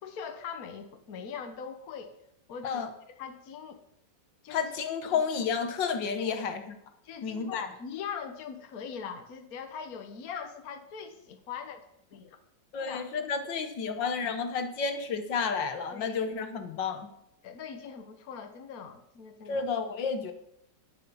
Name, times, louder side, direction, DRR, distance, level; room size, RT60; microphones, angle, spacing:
voice 1, 0.0-2.1 2.5-2.8 3.2-3.8 4.4-4.7 5.1-5.2 6.2-6.5 7.0-11.8 12.1-12.4 12.8-13.1 15.9-16.2 17.4-19.7, left 7 dB, 55° left, 6 dB, 1.6 m, -41 dB
voice 2, 4.5-6.6 7.2-7.7 12.7-17.1 19.5-20.3, left 5 dB, 75° left, 7 dB, 1.9 m, -31 dB
11.0 x 9.9 x 7.0 m, 0.76 s
omnidirectional pair, 2.0 m